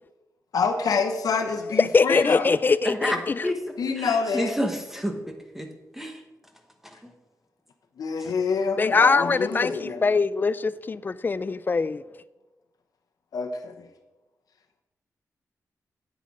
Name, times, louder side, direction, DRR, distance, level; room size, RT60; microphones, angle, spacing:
voice 1, 0.5-2.5 3.1-3.2 3.8-4.5 8.0-10.0 13.3-13.9, left 5 dB, 80° left, 1.0 m, -27 dB
voice 2, 1.8-3.5 8.8-12.0, left 4 dB, 30° left, 0.3 m, -22 dB
voice 3, 2.8-3.6 4.0-5.7 5.9-6.2, equal, 5° right, 1.1 m, -29 dB
9.5 x 8.4 x 4.9 m
wide cardioid pair, 130°, 6 cm